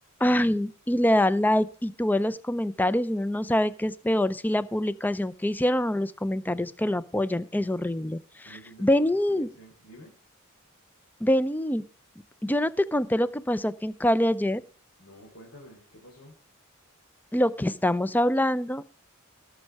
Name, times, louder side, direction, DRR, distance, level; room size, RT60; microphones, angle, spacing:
voice 1, 0.2-9.5 11.2-11.8 12.4-14.6 17.3-18.9, left 1 dB, 10° left, 16 dB, 0.5 m, -25 dB
voice 2, 8.4-10.1 15.0-16.3, equal, 65° left, -3 dB, 3.8 m, -49 dB
19.0 x 6.5 x 4.6 m, 0.38 s
head